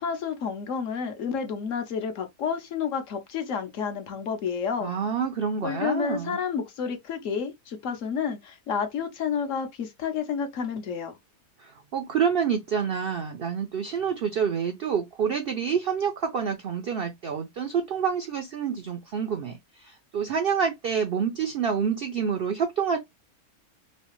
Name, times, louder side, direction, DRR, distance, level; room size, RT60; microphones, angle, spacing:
voice 1, 0.0-4.9 5.6-11.2, left 6 dB, 65° left, 1.0 m, -30 dB
voice 2, 4.8-6.4 11.6-23.0, right 7 dB, 70° right, 0.5 m, -27 dB
3.2 x 2.7 x 3.0 m
omnidirectional pair, 1.6 m